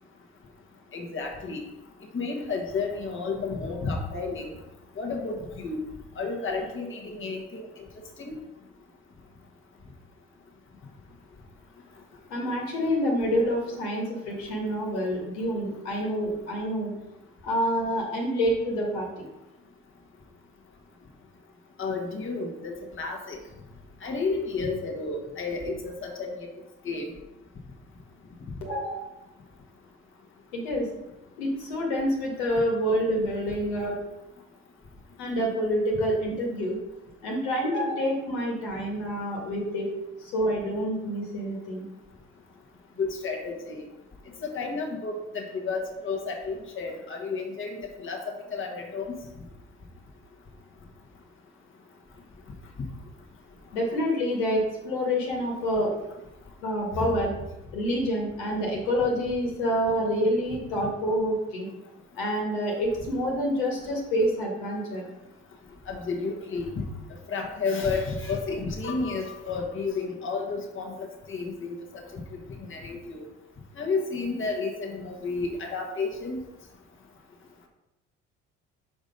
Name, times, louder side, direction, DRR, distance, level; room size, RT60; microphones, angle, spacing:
voice 1, 0.9-1.6 2.1-4.5 5.0-5.8 6.2-7.7 8.2-8.3 21.8-23.4 24.0-26.5 26.8-27.1 43.0-43.8 44.4-49.1 56.9-57.1 65.9-66.8 67.3-71.7 72.7-73.3 73.8-76.4, left 4 dB, 35° left, 1 dB, 1.5 m, -31 dB
voice 2, 12.3-16.9 17.4-19.3 28.6-29.0 30.5-30.9 31.4-34.0 35.2-36.8 37.2-39.9 40.2-41.8 53.7-55.9 56.6-57.3 57.7-61.7 62.2-65.0, equal, 80° left, -1 dB, 2.0 m, -27 dB
5.2 x 5.1 x 5.3 m, 0.94 s
hypercardioid pair, 60°, 35 cm